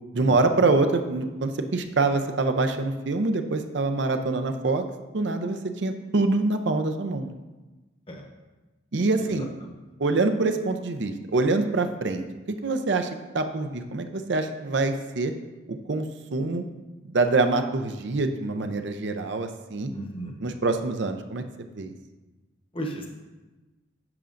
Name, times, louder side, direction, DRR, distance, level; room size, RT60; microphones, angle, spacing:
voice 1, 0.1-4.8 5.1-7.3 8.9-9.5 10.0-13.1 13.3-15.3 15.9-16.1 16.3-16.7 17.0-19.9 20.4-21.4 21.7-21.9, right 3 dB, 60° right, 7 dB, 0.6 m, -25 dB
voice 2, 19.9-20.3 22.7-23.1, right 1 dB, 25° left, 1 dB, 1.0 m, -35 dB
10.5 x 6.9 x 2.5 m, 1.2 s
head